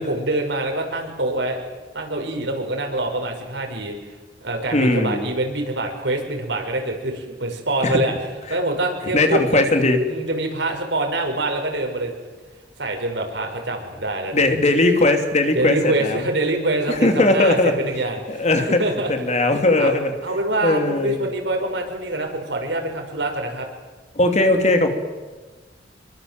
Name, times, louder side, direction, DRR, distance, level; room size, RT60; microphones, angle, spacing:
voice 1, 0.0-1.6 1.9-3.9 4.4-8.1 8.5-9.4 10.0-12.1 12.8-14.6 15.5-19.1 19.8-19.9 20.2-23.7, right 2 dB, 90° right, 3 dB, 6.0 m, -25 dB
voice 2, 4.7-5.3 7.8-8.0 9.1-10.0 14.3-16.2 16.9-17.8 18.3-18.8 19.1-20.1 20.6-21.2 24.1-24.9, left 2 dB, 40° left, 5 dB, 3.0 m, -18 dB
27.0 x 23.0 x 7.8 m, 1.3 s
head